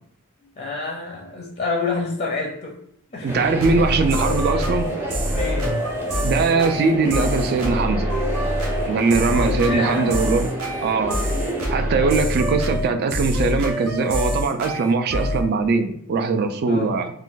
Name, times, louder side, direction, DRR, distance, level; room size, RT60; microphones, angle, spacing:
voice 1, 0.6-2.7 3.1-3.4 5.3-5.9 9.6-10.2 16.7-17.0, left 3 dB, 30° left, 0 dB, 0.5 m, -28 dB
voice 2, 3.2-4.9 6.2-8.1 8.9-10.5 10.8-11.2 11.7-17.1, right 4 dB, 45° right, 8 dB, 0.3 m, -21 dB
sound 1, 3.3-12.2, right 1 dB, 10° right, 0.6 m, -30 dB
sound 2, 3.6-15.5, equal, 75° right, 0.7 m, -25 dB
2.4 x 2.2 x 3.8 m, 0.68 s
head